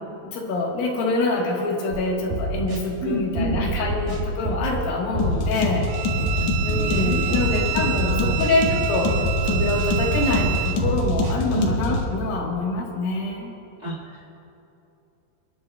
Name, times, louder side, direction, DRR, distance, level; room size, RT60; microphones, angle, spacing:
voice 1, 0.3-5.9 6.6-9.1 9.4-13.5, left 2 dB, 75° left, -1 dB, 3.2 m, -25 dB
sound 1, 1.9-2.0 2.3-2.8 3.4-4.8 5.1-5.7 6.2-7.7 8.0-8.5 9.0-10.5 10.8-11.3 11.9-12.0, right 2 dB, 70° right, 4.0 m, -27 dB
voice 2, 3.0-3.6 6.3-7.4 7.9-8.4 11.5-11.8 13.8-14.3, right 2 dB, 35° right, -5 dB, 1.6 m, -29 dB
sound 2, 5.2-12.1, left 2 dB, 60° left, 2.1 m, -26 dB
Bowed string instrument, 5.9-10.8, right 16 dB, 85° right, 2.4 m, -29 dB
29.0 x 11.0 x 2.3 m, 2.9 s
omnidirectional pair, 4.2 m